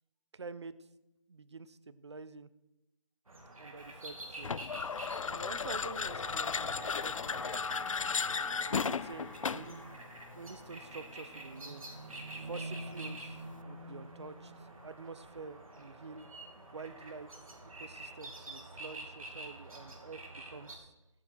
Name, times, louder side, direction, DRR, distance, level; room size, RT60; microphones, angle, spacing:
voice 1, 0.3-0.7 1.3-2.5 3.6-4.6 5.3-7.5 8.7-10.1 10.3-11.9 12.4-16.3 16.7-17.4 17.6-20.9, right 4 dB, 55° right, 16 dB, 0.7 m, -48 dB
sound 1, 3.3-20.8, right 2 dB, 85° right, 3.2 m, -47 dB
sound 2, 4.4-9.8, left 6 dB, 70° left, 0.5 m, -35 dB
sound 3, 6.1-12.1, left 1 dB, 5° left, 1.0 m, -46 dB
13.5 x 10.0 x 4.7 m, 0.98 s
figure-of-eight pair, 175°, 17 cm